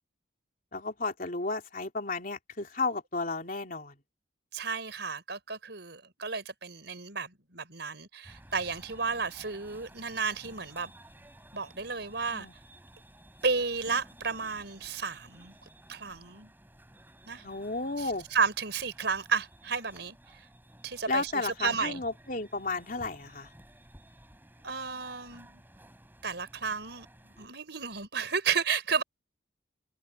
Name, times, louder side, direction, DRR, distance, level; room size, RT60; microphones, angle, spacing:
voice 1, 0.7-4.0 12.3-12.5 17.4-18.3 21.1-23.5, left 3 dB, 45° left, 3.4 m, -33 dB
voice 2, 4.5-10.9 11.5-12.5 13.4-15.6 15.9-16.5 17.3-17.4 18.0-20.5 20.8-22.0 24.6-25.6 26.2-27.1 27.4-29.0, right 5 dB, 65° right, 5.5 m, -32 dB
sound 1, 8.2-27.5, right 1 dB, 10° right, 8.0 m, -55 dB
head